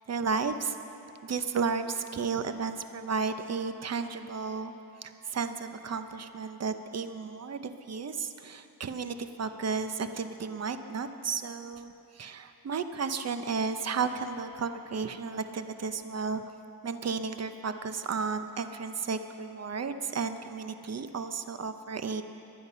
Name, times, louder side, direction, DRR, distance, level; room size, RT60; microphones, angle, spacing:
voice 1, 0.1-0.8 1.2-4.7 5.0-16.4 16.8-22.2, right 5 dB, 45° right, 9 dB, 0.8 m, -33 dB
23.5 x 10.0 x 5.6 m, 2.9 s
wide cardioid pair, 130°, 36 cm